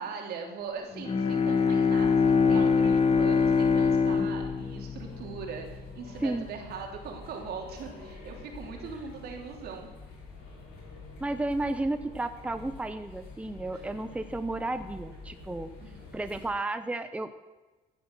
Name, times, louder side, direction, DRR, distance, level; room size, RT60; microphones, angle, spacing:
voice 1, 0.0-9.9 13.7-13.8 15.8-16.1, right 5 dB, 70° right, 1 dB, 3.3 m, -40 dB
Bowed string instrument, 0.9-5.8, left 5 dB, 35° left, 1.5 m, -24 dB
sound 1, 1.9-16.5, left 3 dB, 85° left, 6.1 m, -47 dB
voice 2, 11.2-15.7 16.1-17.3, right 2 dB, 5° right, 9 dB, 0.7 m, -32 dB
15.5 x 9.6 x 6.1 m, 1.2 s
cardioid pair, 110°, 17 cm